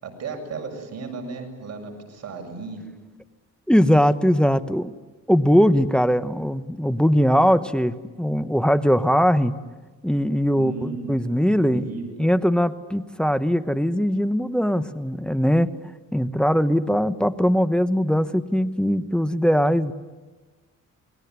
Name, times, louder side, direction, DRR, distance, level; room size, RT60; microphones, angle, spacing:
voice 1, 0.0-2.8 10.6-11.1 11.6-12.2, right 4 dB, 55° right, 3 dB, 7.6 m, -34 dB
voice 2, 3.7-4.9 5.3-9.6 10.0-11.9 12.2-15.7 16.1-19.9, equal, 5° left, 11 dB, 1.2 m, -20 dB
28.5 x 21.0 x 9.6 m, 1.3 s
cardioid pair, 90°, 30 cm